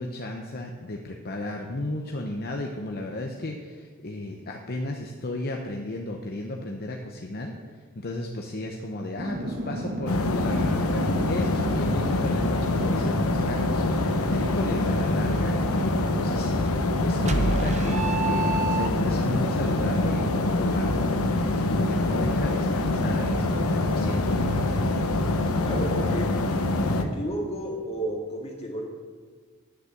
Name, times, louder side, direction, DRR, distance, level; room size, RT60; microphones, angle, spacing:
voice 1, 0.0-21.1 21.6-24.5, left 2 dB, 45° left, 2 dB, 0.8 m, -34 dB
sound 1, 9.2-28.1, equal, 50° right, 1.3 m, -40 dB
sound 2, 10.1-27.0, left 2 dB, 90° left, 1.0 m, -25 dB
sound 3, 17.3-19.4, right 3 dB, 35° right, 0.7 m, -27 dB
voice 2, 25.6-26.4 26.9-28.9, right 1 dB, 30° left, -1 dB, 2.2 m, -32 dB
10.0 x 6.7 x 7.3 m, 1.5 s
head